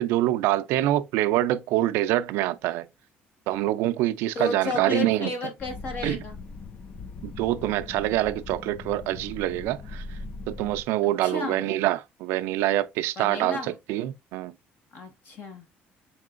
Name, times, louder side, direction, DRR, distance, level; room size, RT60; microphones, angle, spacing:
voice 1, 0.0-2.9 3.5-5.3 6.0-6.2 7.2-10.2 10.5-13.6 13.9-14.5, right 15 dB, 90° right, 0.3 m, -25 dB
voice 2, 4.3-6.4 11.2-11.7 13.2-13.7 14.9-15.7, left 3 dB, 55° left, 1.4 m, -33 dB
sound 1, 5.6-10.8, left 3 dB, 30° left, 0.3 m, -40 dB
4.2 x 3.7 x 2.4 m
cardioid pair, 145°, 4 cm